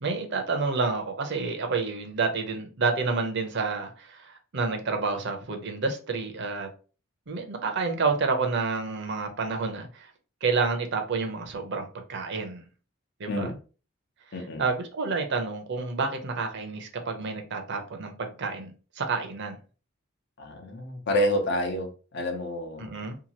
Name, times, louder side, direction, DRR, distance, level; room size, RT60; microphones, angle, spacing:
voice 1, 0.0-6.7 7.3-10.1 10.4-12.6 13.2-13.5 14.6-19.6 22.8-23.2, right 4 dB, 60° right, 0.6 m, -29 dB
voice 2, 14.3-14.6 20.4-22.9, equal, 60° left, 0.7 m, -29 dB
2.8 x 2.3 x 2.7 m
head